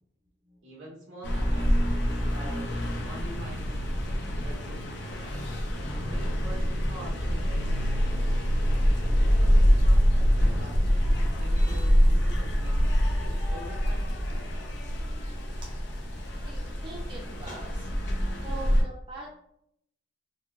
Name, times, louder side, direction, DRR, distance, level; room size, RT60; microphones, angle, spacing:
voice 1, 0.6-2.6 3.0-5.5 6.1-8.3 9.3-11.1 11.4-14.2, right 1 dB, 75° right, -4 dB, 1.3 m, -46 dB
sound 1, 1.2-18.8, equal, 60° left, 0.5 m, -25 dB
sound 2, 11.1-18.8, equal, 40° left, 1.0 m, -52 dB
voice 2, 16.4-17.9 18.4-19.4, right 2 dB, 25° right, -4 dB, 0.5 m, -42 dB
3.9 x 2.2 x 2.4 m, 0.73 s
head